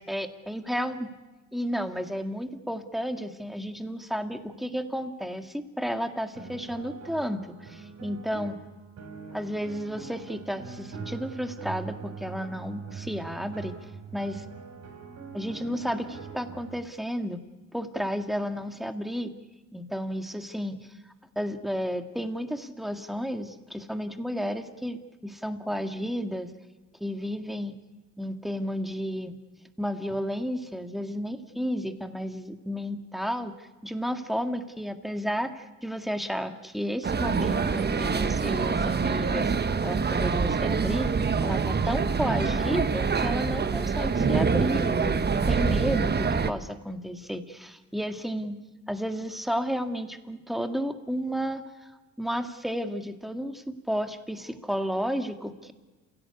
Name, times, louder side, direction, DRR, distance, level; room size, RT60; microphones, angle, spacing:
voice 1, 0.1-1.1 1.5-8.6 9.3-13.7 14.1-14.4 15.3-17.4 17.7-19.3 19.7-20.9 21.4-26.5 27.0-27.8 28.2-29.4 29.8-39.5 39.8-41.1 41.4-48.6 48.9-51.6 52.2-55.7, equal, ahead, 6 dB, 2.1 m, -32 dB
sound 1, 6.3-16.8, right 5 dB, 60° right, 5.7 m, -42 dB
sound 2, 37.0-46.5, right 5 dB, 35° right, 1.2 m, -25 dB
28.0 x 17.0 x 8.5 m, 1.2 s
cardioid pair, 90°, 30 cm